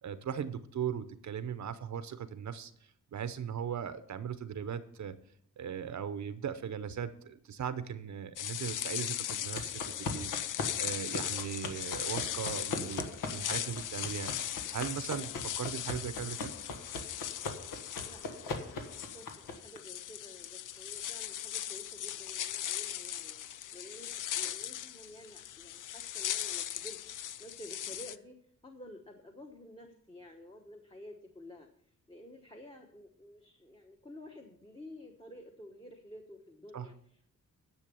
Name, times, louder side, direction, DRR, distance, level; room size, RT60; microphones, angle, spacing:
voice 1, 0.0-2.7 3.1-5.2 5.6-10.5 10.8-16.5 36.7-36.9, right 8 dB, 60° right, 12 dB, 0.7 m, -38 dB
sound 1, 8.4-28.2, left 11 dB, 70° left, 0.5 m, -39 dB
sound 2, 9.3-19.8, left 3 dB, 90° left, 1.7 m, -41 dB
voice 2, 18.0-28.4 28.6-31.7 32.1-37.4, left 1 dB, 15° left, 2 dB, 1.1 m, -51 dB
10.5 x 7.1 x 6.9 m, 0.67 s
wide cardioid pair, 160°, 32 cm